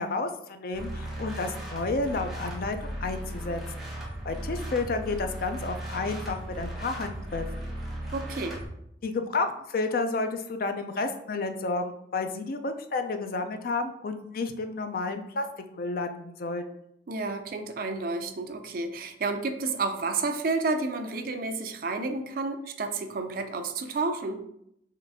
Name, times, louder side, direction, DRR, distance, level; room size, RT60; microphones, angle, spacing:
voice 1, 0.0-3.6 4.2-7.7 9.0-16.6, left 3 dB, 55° left, 7 dB, 0.4 m, -31 dB
sound 1, 0.7-8.7, right 1 dB, ahead, 0.9 m, -37 dB
voice 2, 8.1-8.6 17.1-24.4, right 3 dB, 50° right, 7 dB, 0.4 m, -30 dB
3.8 x 3.1 x 3.5 m, 0.76 s
head